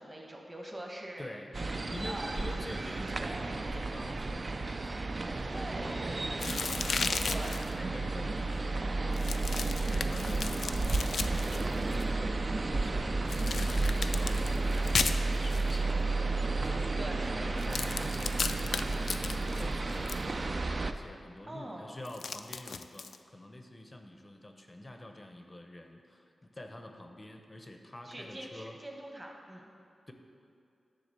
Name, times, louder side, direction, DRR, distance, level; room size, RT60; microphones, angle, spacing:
voice 1, 0.0-2.3 3.2-3.4 5.5-6.3 7.3-7.6 17.0-17.6 21.4-21.9 28.0-29.7, right 1 dB, 20° right, 0 dB, 1.1 m, -44 dB
voice 2, 1.2-1.5 1.9-12.4 12.7-28.8 30.1-30.2, left 1 dB, 20° left, 4 dB, 0.6 m, -47 dB
sound 1, 1.5-20.9, right 3 dB, 35° right, 0.4 m, -32 dB
sound 2, 6.4-7.7 9.1-12.0 13.3-15.7 17.6-20.2 22.0-23.2, left 5 dB, 75° left, 0.3 m, -35 dB
10.0 x 4.0 x 6.6 m, 2.5 s
wide cardioid pair, 135°, 0 cm